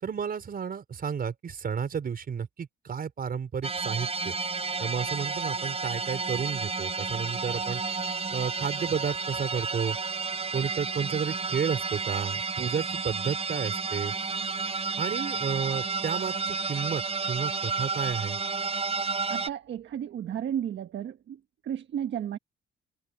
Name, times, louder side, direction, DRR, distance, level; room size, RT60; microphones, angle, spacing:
voice 1, 0.0-4.3 4.8-7.8 8.3-10.0 10.5-14.1 15.0-18.4, right 7 dB, 50° right, 5.1 m, -32 dB
sound 1, 3.6-19.5, right 4 dB, 30° right, 4.6 m, -31 dB
voice 2, 19.3-22.4, right 9 dB, 65° right, 1.4 m, -33 dB
cardioid pair, 90°, 20 cm